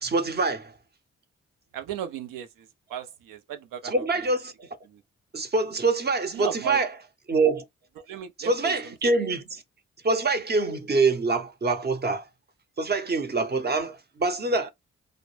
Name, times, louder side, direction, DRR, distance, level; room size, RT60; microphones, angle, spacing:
voice 1, 0.0-0.7 3.8-4.7 5.3-6.9 7.3-7.6 8.4-9.6 10.0-12.2 12.8-14.7, right 3 dB, 30° right, 0.7 m, -25 dB
voice 2, 1.7-4.0 4.8-5.0 6.3-6.8 8.0-9.3, right 10 dB, 80° right, 0.5 m, -36 dB
2.0 x 2.0 x 3.1 m
supercardioid pair, 45°, 32 cm